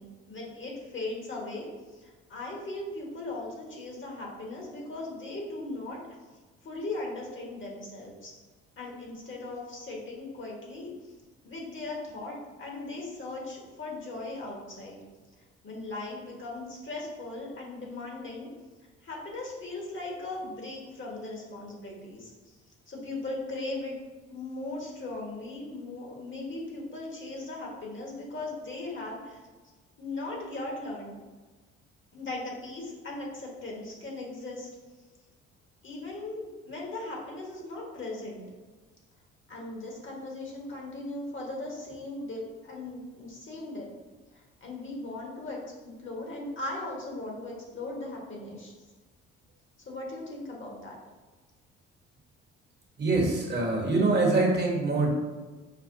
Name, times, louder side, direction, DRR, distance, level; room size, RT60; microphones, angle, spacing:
voice 1, 0.0-1.7 1.9-6.0 6.6-8.3 8.8-10.9 11.4-15.0 15.6-18.5 19.0-22.5 22.9-24.0 24.3-29.4 30.0-31.1 32.1-34.7 35.8-38.4 39.5-43.9 44.6-48.7 49.9-50.9, left 2 dB, 40° left, -1 dB, 1.2 m, -38 dB
voice 2, 53.0-55.1, right 3 dB, 35° right, -1 dB, 1.1 m, -24 dB
5.6 x 2.1 x 2.6 m, 1.3 s
hypercardioid pair, 55°, 31 cm